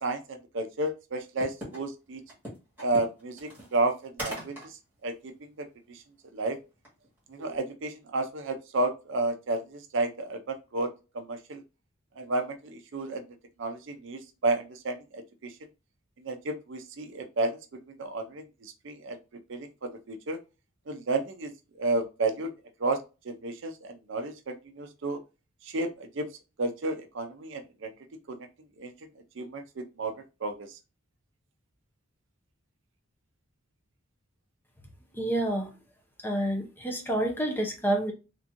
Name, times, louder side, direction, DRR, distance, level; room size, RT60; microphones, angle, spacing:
voice 1, 0.0-2.2 2.8-5.3 5.6-6.0 6.3-6.6 7.3-10.9 11.1-11.6 12.2-13.2 13.6-15.5 16.2-17.6 17.9-19.2 19.5-20.4 20.9-21.5 21.8-22.5 22.8-23.0 23.2-25.2 25.7-25.9 26.1-26.3 26.6-27.9 28.3-28.4 28.8-28.9 29.4-30.1 30.4-30.8, right 2 dB, 60° right, 0.5 m, -32 dB
sound 1, 1.4-1.8 2.3-4.7 5.1-5.2 6.9-7.1 7.4-7.6, right 1 dB, 10° right, 1.5 m, -39 dB
voice 2, 35.1-35.7 36.2-38.1, right 1 dB, 10° left, 0.6 m, -28 dB
3.5 x 2.9 x 2.5 m
head